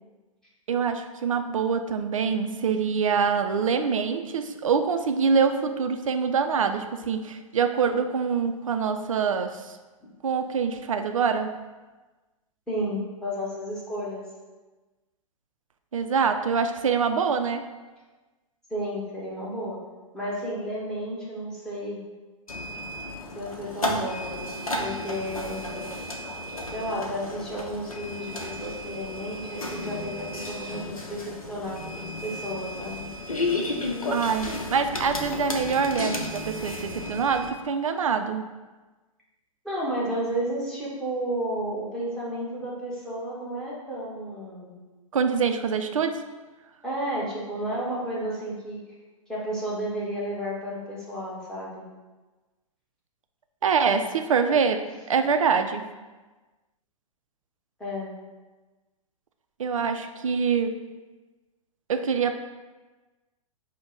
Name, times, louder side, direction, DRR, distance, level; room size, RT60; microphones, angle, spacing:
voice 1, 0.7-9.7 10.2-11.5 15.9-17.7 34.1-38.4 45.1-46.2 53.6-55.8 59.6-60.8 61.9-62.4, right 6 dB, 65° right, 7 dB, 0.4 m, -25 dB
voice 2, 12.7-14.2 18.7-19.8 20.1-22.0 23.3-25.7 26.7-33.1 39.6-44.8 46.8-48.8 49.3-51.8 57.8-58.1, equal, 5° left, -8 dB, 1.1 m, -32 dB
sound 1, 22.5-37.5, left 1 dB, 75° left, 0.7 m, -33 dB
5.1 x 2.1 x 3.8 m, 1.2 s
figure-of-eight pair, 110°, 18 cm